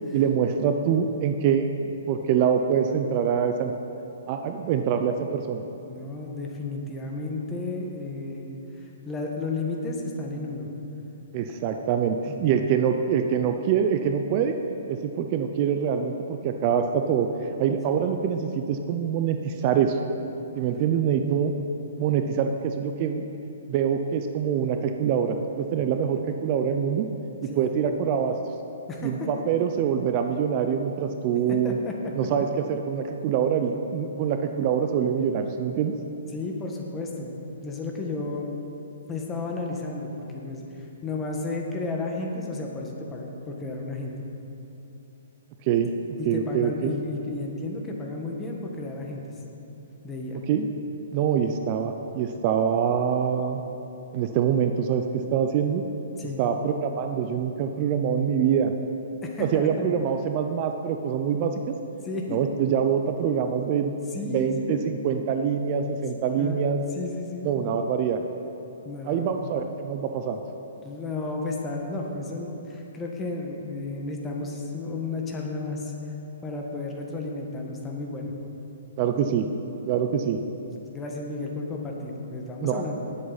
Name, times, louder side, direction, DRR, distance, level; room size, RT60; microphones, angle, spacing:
voice 1, 0.1-3.7 4.3-5.6 11.3-14.5 14.9-20.0 20.6-21.5 22.0-23.3 23.7-27.1 27.4-28.4 29.0-31.8 32.1-35.9 45.6-45.9 46.3-47.0 50.5-50.7 51.1-53.6 54.1-55.8 56.4-58.7 59.4-61.7 62.3-64.0 64.3-66.8 67.4-68.2 69.1-70.4 79.0-79.5 79.8-80.4 82.6-82.8, right 7 dB, 35° right, 6 dB, 0.6 m, -25 dB
voice 2, 5.9-10.7 12.2-12.4 25.1-25.2 27.5-27.7 28.9-29.3 31.5-32.1 36.3-38.5 39.1-44.1 46.2-49.2 50.0-50.4 56.2-56.4 59.2-59.9 62.0-62.4 64.1-64.8 66.2-66.6 66.9-67.5 68.8-69.5 70.8-75.9 76.4-78.3 80.5-82.9, left 3 dB, 15° left, 0 dB, 1.4 m, -33 dB
18.0 x 7.7 x 4.1 m, 2.9 s
hypercardioid pair, 150°, 0 cm